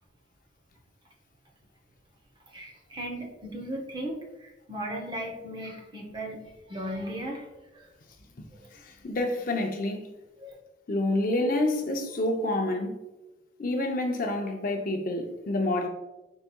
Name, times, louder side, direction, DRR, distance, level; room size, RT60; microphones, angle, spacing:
voice 1, 2.5-6.4 6.7-7.5 7.7-7.9 8.5-8.6 10.4-10.6, right 1 dB, 25° right, 0.7 m, -36 dB
voice 2, 8.8-10.0 10.9-13.0 13.6-15.9, left 1 dB, 50° left, 0.6 m, -28 dB
4.5 x 4.1 x 2.2 m
head